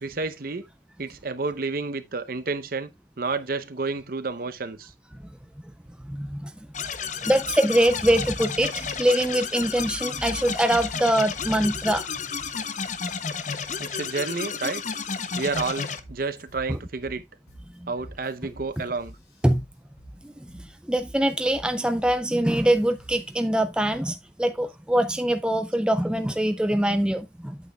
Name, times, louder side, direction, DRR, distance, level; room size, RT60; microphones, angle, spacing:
voice 1, 0.0-0.7 1.0-2.9 3.2-4.9 13.8-14.8 15.4-17.2 17.9-19.2, right 4 dB, 50° right, 0.7 m, -30 dB
voice 2, 6.0-6.9 7.2-12.1 16.7-16.8 17.8-17.9 19.4-19.6 20.2-27.6, right 1 dB, 5° right, 0.4 m, -24 dB
sound 1, 6.7-16.0, left 6 dB, 40° left, 0.7 m, -32 dB
sound 2, 15.5-23.5, right 1 dB, 60° left, 2.9 m, -48 dB
8.5 x 8.3 x 2.3 m
head